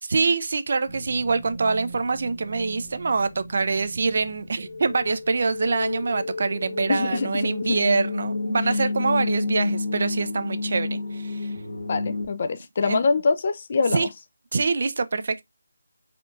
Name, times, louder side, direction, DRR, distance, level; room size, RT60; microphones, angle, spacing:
voice 1, 0.0-11.5 12.8-13.0 13.9-14.1 14.5-15.4, right 4 dB, 50° right, 0.5 m, -25 dB
sound 1, 0.9-12.3, left 3 dB, 70° left, 1.6 m, -31 dB
voice 2, 6.9-7.8 11.9-14.0, left 4 dB, 40° left, 0.5 m, -24 dB
4.6 x 4.3 x 2.6 m
figure-of-eight pair, 155°, 0 cm